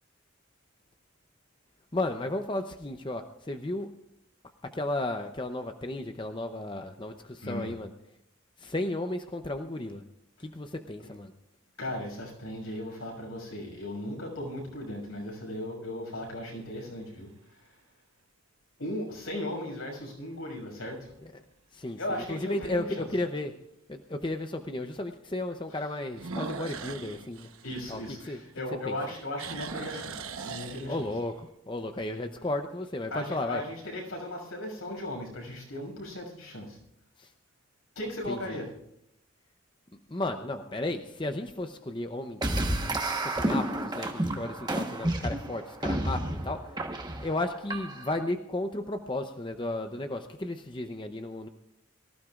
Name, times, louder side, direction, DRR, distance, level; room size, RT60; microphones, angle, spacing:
voice 1, 1.9-3.9 4.7-7.9 8.6-10.0 10.4-11.3 21.7-23.5 23.9-27.5 27.9-28.0 28.3-28.4 28.9-29.0 30.9-33.6 37.2-37.3 38.3-38.6 40.1-42.6 43.2-46.6 47.2-51.5, left 2 dB, 20° left, 6 dB, 0.7 m, -34 dB
voice 2, 7.4-7.7 11.0-11.1 11.8-17.3 17.6-17.7 18.8-21.1 22.0-23.1 25.7-25.8 27.6-31.1 33.1-36.8 37.9-38.7, left 1 dB, 75° left, 0 dB, 6.4 m, -37 dB
sound 1, 12.5-13.1 13.8-13.9 19.1-19.6 20.1-20.2 20.7-20.8 21.1-21.2 22.7-22.8 26.1-28.6 29.0-31.3, right 4 dB, 80° right, 1.1 m, -40 dB
sound 2, 42.4-48.2, right 1 dB, 20° right, 1.2 m, -31 dB
24.0 x 15.0 x 2.5 m, 0.79 s
head